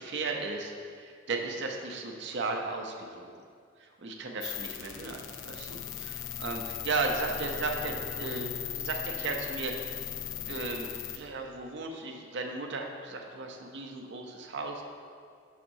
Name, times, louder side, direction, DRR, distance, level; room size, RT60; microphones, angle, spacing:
voice 1, 0.0-3.3 3.8-9.7 10.5-14.8, right 3 dB, 65° right, 2 dB, 0.6 m, -35 dB
sound 1, 4.4-11.2, left 10 dB, 75° left, 0.5 m, -38 dB
6.1 x 5.8 x 2.7 m, 2.1 s
head